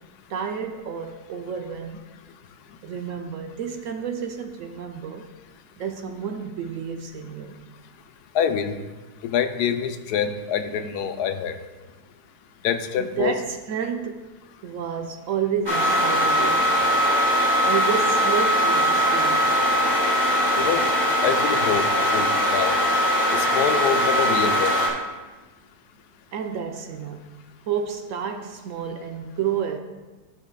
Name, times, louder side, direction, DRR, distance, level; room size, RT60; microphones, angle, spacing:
voice 1, 0.3-2.0 2.8-5.3 5.8-7.5 13.0-14.2 14.6-16.8 17.6-19.4 26.3-27.2 27.7-29.8, right 7 dB, 70° right, 5 dB, 0.8 m, -30 dB
voice 2, 8.3-8.8 9.2-11.5 12.6-13.4 20.6-20.9 21.2-21.8 22.1-22.7 23.3-24.7, left 8 dB, 80° left, 8 dB, 1.1 m, -25 dB
sound 1, 15.7-24.9, equal, 15° right, 1.7 m, -21 dB
14.0 x 5.7 x 2.2 m, 1.2 s
omnidirectional pair, 1.7 m